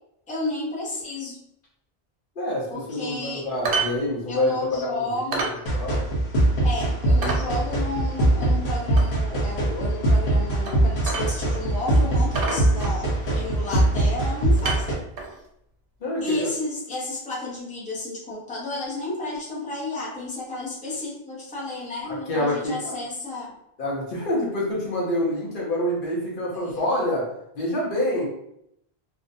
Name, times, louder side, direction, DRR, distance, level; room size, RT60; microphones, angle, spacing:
voice 1, 0.3-1.4 2.7-3.5 4.3-5.5 6.6-15.0 16.2-23.5 26.5-26.8, left 2 dB, 10° left, -5 dB, 0.5 m, -32 dB
voice 2, 2.4-5.4 5.7-6.0 12.4-12.9 16.0-16.5 22.1-22.9 23.8-27.3 27.5-28.3, left 1 dB, 60° left, -4 dB, 0.9 m, -27 dB
sound 1, 3.6-4.0 4.2-4.3 4.7-4.8 5.3-5.6 6.0-6.1 6.6-6.7 7.2-7.5 9.0-9.1 10.6-10.8 11.1-11.6 11.9-12.0 12.3-13.3 14.0-14.2 14.6-15.4 16.3-16.4, right 4 dB, 65° right, 0.7 m, -29 dB
sound 2, 5.7-14.9, right 1 dB, 85° left, 1.1 m, -22 dB
2.6 x 2.1 x 2.5 m, 0.78 s
omnidirectional pair, 1.1 m